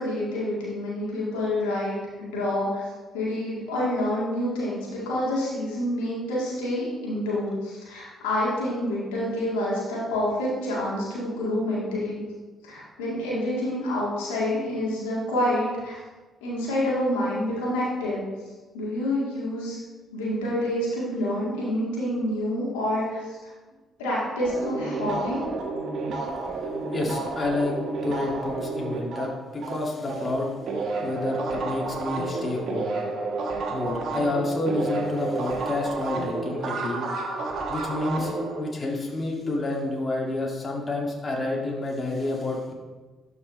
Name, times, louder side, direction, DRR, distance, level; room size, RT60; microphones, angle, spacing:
voice 1, 0.0-2.8 3.1-12.2 12.6-16.0 16.4-18.2 18.7-19.8 20.1-23.4 24.0-25.4, left 1 dB, 85° left, -6 dB, 1.9 m, -27 dB
sound 1, 24.4-30.3 30.6-38.6, right 3 dB, 65° right, 1.2 m, -30 dB
voice 2, 26.6-27.8 28.0-30.5 31.0-32.9 33.7-37.1 37.7-42.7, left 2 dB, 40° left, -1 dB, 1.9 m, -29 dB
12.0 x 4.8 x 3.2 m, 1.3 s
hypercardioid pair, 45°, 0 cm